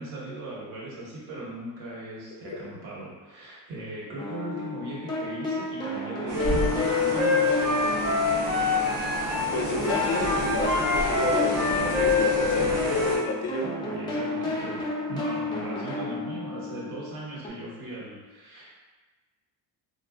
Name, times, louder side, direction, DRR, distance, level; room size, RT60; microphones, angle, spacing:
voice 1, 0.0-8.0 13.6-14.8 15.1-18.7, right 1 dB, 60° right, -5 dB, 1.3 m, -38 dB
sound 1, 4.2-9.4 9.8-17.5, left 2 dB, 10° left, 0.3 m, -32 dB
Wind instrument woodwind instrument, 6.3-9.5 9.8-13.2, left 4 dB, 30° right, 0.9 m, -26 dB
sound 2, 6.3-13.2, right 1 dB, 90° right, 1.2 m, -32 dB
voice 2, 9.5-13.7, left 3 dB, 90° left, 1 dB, 0.7 m, -30 dB
3.6 x 2.6 x 2.2 m, 1.3 s
cardioid pair, 130°, 44 cm